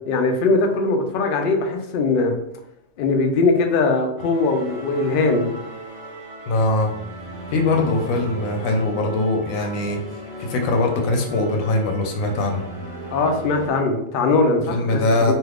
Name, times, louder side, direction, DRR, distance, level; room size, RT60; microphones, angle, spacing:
voice 1, 0.1-2.3 3.0-5.5 13.1-15.0 15.3-15.4, left 3 dB, 65° left, 3 dB, 0.5 m, -20 dB
sound 1, 4.2-13.7, right 2 dB, 35° right, 0.6 m, -36 dB
voice 2, 6.5-6.9 7.5-10.0 10.4-12.6 14.7-15.3, left 2 dB, 90° left, 3 dB, 1.0 m, -21 dB
2.7 x 2.4 x 3.4 m, 0.77 s
omnidirectional pair, 1.4 m